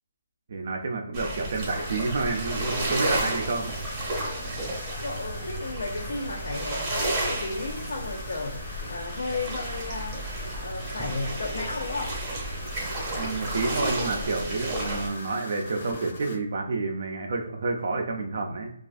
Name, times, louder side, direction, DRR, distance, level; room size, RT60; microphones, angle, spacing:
voice 1, 0.5-3.7 13.1-18.7, right 3 dB, 55° right, 2 dB, 0.3 m, -29 dB
sound 1, 1.1-15.1, right 1 dB, 20° right, 0.7 m, -32 dB
sound 2, 1.5-16.4, left 2 dB, 40° left, 0.7 m, -43 dB
voice 2, 4.4-4.7 5.0-12.2, left 3 dB, 75° left, 0 dB, 0.4 m, -34 dB
2.4 x 2.3 x 2.3 m, 0.74 s
hypercardioid pair, 165°, 0 cm